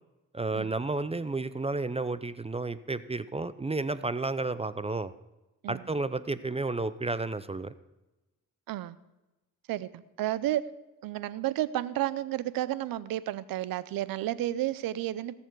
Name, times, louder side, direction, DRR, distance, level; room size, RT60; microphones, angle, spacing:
voice 1, 0.3-5.1 5.7-7.7, right 3 dB, 20° right, 14 dB, 0.6 m, -32 dB
voice 2, 9.7-10.7 11.0-15.4, right 13 dB, 85° right, 17 dB, 0.6 m, -32 dB
17.5 x 7.1 x 4.6 m, 1.0 s
cardioid pair, 60°, 34 cm